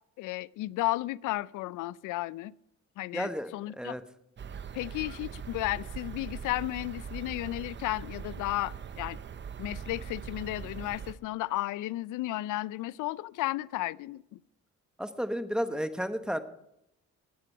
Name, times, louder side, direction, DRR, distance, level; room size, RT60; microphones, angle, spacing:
voice 1, 0.2-2.5 3.0-3.9 4.7-9.2 9.6-14.4, left 17 dB, 85° left, 0.5 m, -33 dB
voice 2, 3.1-4.0 15.0-16.4, equal, 5° right, 1.1 m, -32 dB
sound 1, 4.4-11.1, right 7 dB, 40° right, 0.8 m, -41 dB
20.0 x 7.7 x 4.6 m
cardioid pair, 90°, 30 cm